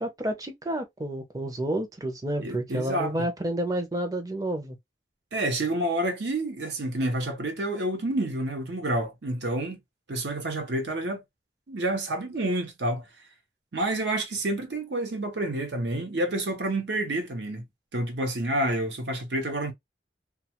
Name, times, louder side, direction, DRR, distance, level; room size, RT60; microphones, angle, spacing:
voice 1, 0.0-4.8, right 1 dB, 20° right, 0.5 m, -30 dB
voice 2, 2.4-3.3 5.3-9.8 10.1-11.2 11.7-13.0 13.7-17.6 17.9-19.7, right 1 dB, 75° right, 0.8 m, -29 dB
2.3 x 2.3 x 2.8 m
head